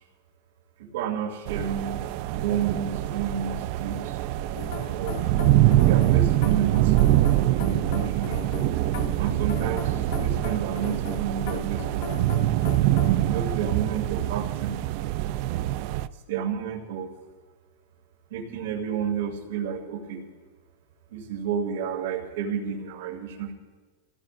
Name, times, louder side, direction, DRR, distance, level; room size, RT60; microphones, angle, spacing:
voice 1, 0.9-2.0 2.4-4.2 4.9-5.2 5.8-7.0 7.6-8.5 9.2-12.2 13.1-14.8 16.3-17.1 18.3-20.2 21.1-23.5, right 7 dB, 70° right, -2 dB, 2.8 m, -31 dB
sound 1, 1.5-16.1, right 14 dB, 40° right, 0.4 m, -24 dB
sound 2, 4.5-13.2, left 6 dB, 70° left, 2.1 m, -38 dB
28.0 x 17.0 x 2.6 m, 1.4 s
supercardioid pair, 180°, 0 cm